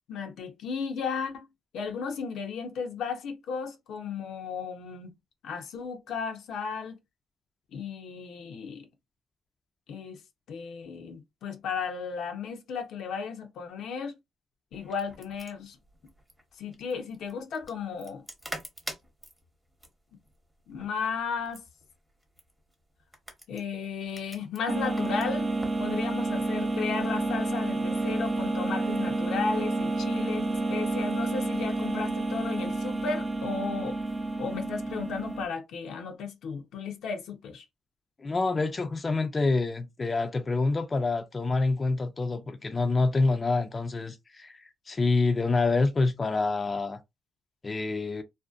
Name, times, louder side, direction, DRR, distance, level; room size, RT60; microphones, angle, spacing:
voice 1, 0.1-1.5 1.7-5.1 5.4-7.0 7.7-8.9 9.9-10.2 10.5-14.2 14.7-15.8 16.6-18.2 20.7-21.7 23.5-25.5 25.8-34.0 34.4-37.6, left 5 dB, 75° left, 0.6 m, -34 dB
sound 1, 14.7-25.8, equal, 10° right, 0.9 m, -47 dB
sound 2, 24.7-35.5, right 2 dB, 30° right, 0.5 m, -30 dB
voice 2, 38.2-47.0 47.6-48.2, left 3 dB, 30° left, 0.4 m, -27 dB
2.5 x 2.0 x 2.4 m
cardioid pair, 90°, 0 cm